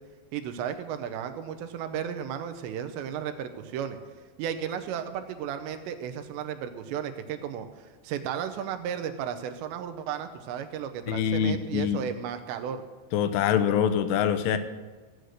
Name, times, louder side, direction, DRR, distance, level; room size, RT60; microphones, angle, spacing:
voice 1, 0.3-4.0 4.4-12.8, right 8 dB, 80° right, 7 dB, 2.9 m, -34 dB
voice 2, 11.1-12.0 13.1-14.6, left 8 dB, 80° left, 11 dB, 2.7 m, -24 dB
16.0 x 8.0 x 6.4 m, 1.3 s
omnidirectional pair, 5.3 m